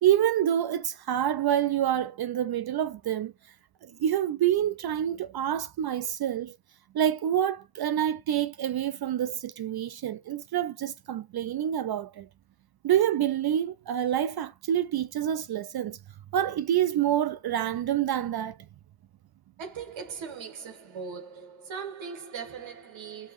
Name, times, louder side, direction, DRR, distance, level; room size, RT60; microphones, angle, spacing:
voice 1, 0.0-3.3 3.8-6.6 6.9-12.3 12.8-16.0 16.3-18.6, right 10 dB, 55° right, 0.5 m, -27 dB
voice 2, 19.6-23.3, right 6 dB, 75° right, 1.6 m, -39 dB
5.2 x 2.8 x 3.1 m
cardioid pair, 60°, 46 cm